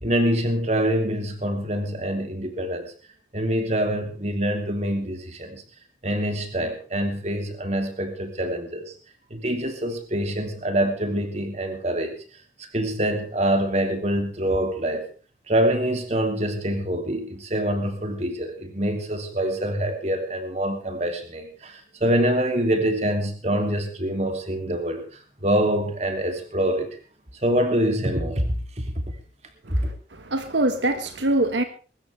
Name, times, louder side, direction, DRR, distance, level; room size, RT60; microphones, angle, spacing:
voice 1, 0.0-2.9 3.3-5.6 6.0-8.9 9.3-12.2 12.6-15.0 15.5-25.0 25.4-27.0 27.4-28.9 29.7-29.8, right 1 dB, 35° right, 5 dB, 3.0 m, -25 dB
voice 2, 29.6-31.6, right 1 dB, 80° right, 7 dB, 1.7 m, -24 dB
23.0 x 13.5 x 3.5 m, 0.37 s
head